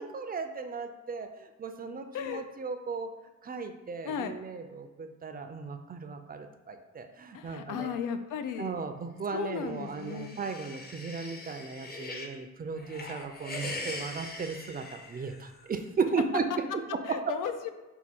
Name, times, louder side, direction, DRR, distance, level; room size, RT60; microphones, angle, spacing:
voice 1, 0.0-3.1 3.4-8.0 8.6-16.5 16.7-17.2, right 5 dB, 30° right, 7 dB, 0.4 m, -36 dB
voice 2, 2.1-2.4 4.0-4.4 7.3-8.8 9.3-10.4 16.5-16.6 17.0-17.7, left 8 dB, 90° left, 8 dB, 0.5 m, -35 dB
sound 1, 9.7-12.4 12.8-15.6, left 2 dB, 30° left, 0.6 m, -42 dB
4.6 x 2.2 x 4.2 m, 1.2 s
cardioid pair, 105°, 31 cm